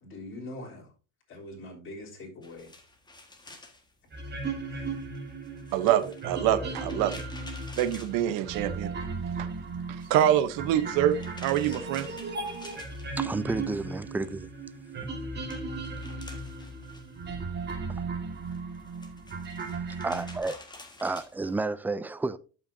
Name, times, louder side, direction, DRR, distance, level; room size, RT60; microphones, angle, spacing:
voice 1, 0.0-0.9 1.3-2.7 3.5-3.6 4.7-4.9, left 1 dB, 35° left, 3.5 m, -43 dB
sound 1, 2.4-8.9 9.2-13.6 13.9-21.6, left 2 dB, 10° left, 1.6 m, -51 dB
sound 2, 4.1-20.4, right 3 dB, 30° right, 1.9 m, -36 dB
voice 2, 5.7-7.2 7.8-8.9 9.4-9.5 9.9-11.1 11.4-12.1, right 11 dB, 70° right, 1.0 m, -25 dB
voice 3, 13.2-14.5 20.0-20.6 21.0-22.4, right 3 dB, 5° right, 0.3 m, -31 dB
12.5 x 5.7 x 2.7 m
supercardioid pair, 110°, 35 cm